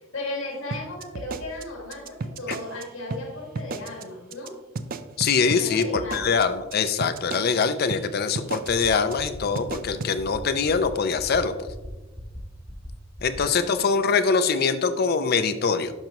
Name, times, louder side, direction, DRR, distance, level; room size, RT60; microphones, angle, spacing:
voice 1, 0.1-4.5 5.6-6.3 13.3-13.8, left 2 dB, 85° left, -1 dB, 2.1 m, -35 dB
sound 1, 0.7-2.8 3.1-3.2 3.6-4.0 4.3-4.5 4.8-7.6 7.9-8.0 8.4-8.8 9.1-9.3 9.6-10.1, right 3 dB, 45° right, 0.4 m, -33 dB
voice 2, 5.2-11.5 13.2-15.9, left 5 dB, 50° left, 11 dB, 0.5 m, -23 dB
sound 2, 8.7-8.9 9.2-9.4 9.7-9.9 10.2-10.4 10.7-10.9 11.2-11.4 11.7-11.9 12.2-12.4 12.7-12.9 13.2-13.4, equal, 10° left, 0.8 m, -39 dB
11.0 x 5.9 x 3.0 m, 1.1 s
head